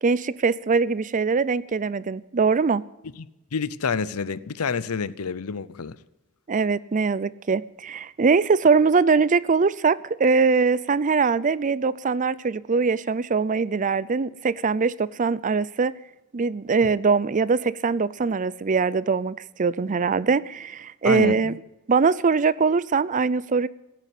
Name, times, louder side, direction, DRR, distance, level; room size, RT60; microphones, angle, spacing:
voice 1, 0.0-2.8 6.5-15.9 16.3-21.5 21.9-23.7, right 4 dB, 35° right, 0.5 m, -22 dB
voice 2, 3.5-6.0 21.0-21.5, left 5 dB, 90° left, 0.7 m, -28 dB
17.0 x 8.9 x 8.3 m
head